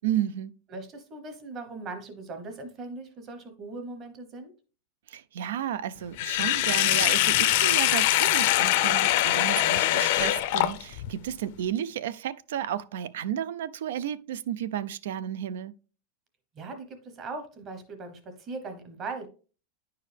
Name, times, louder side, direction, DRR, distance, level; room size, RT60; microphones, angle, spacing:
voice 1, 0.0-0.5 5.1-15.7, right 10 dB, 85° right, 0.4 m, -32 dB
voice 2, 0.7-4.5 16.5-19.3, right 3 dB, 25° right, 0.9 m, -39 dB
Sink (filling or washing), 6.2-11.1, left 15 dB, 55° left, 0.5 m, -23 dB
9.7 x 4.6 x 3.3 m
supercardioid pair, 170°, 0 cm